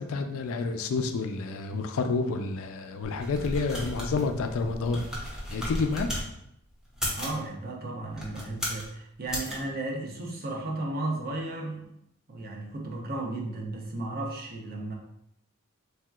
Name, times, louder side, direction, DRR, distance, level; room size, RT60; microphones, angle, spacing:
voice 1, 0.0-5.0 5.5-6.2, left 4 dB, 65° left, 6 dB, 0.3 m, -29 dB
sound 1, 3.0-6.3 6.9-7.4 8.1-8.9 9.3-9.5, equal, 5° right, 0.6 m, -35 dB
voice 2, 7.2-11.8 12.3-14.9, right 2 dB, 45° right, 0 dB, 0.6 m, -34 dB
3.2 x 2.8 x 2.3 m, 0.77 s
head